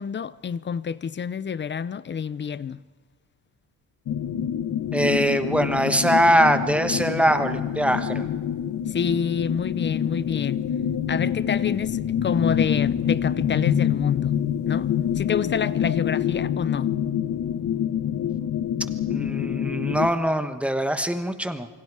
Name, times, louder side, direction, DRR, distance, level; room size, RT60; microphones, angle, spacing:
voice 1, 0.0-2.8 8.9-10.6 11.1-14.4 14.6-16.9, left 7 dB, 30° left, 0.5 m, -28 dB
sound 1, 4.1-20.1, left 9 dB, 50° left, 1.0 m, -26 dB
voice 2, 4.9-8.3 19.1-21.7, equal, 5° right, 1.2 m, -22 dB
27.5 x 24.0 x 4.8 m
cardioid pair, 155°, 38 cm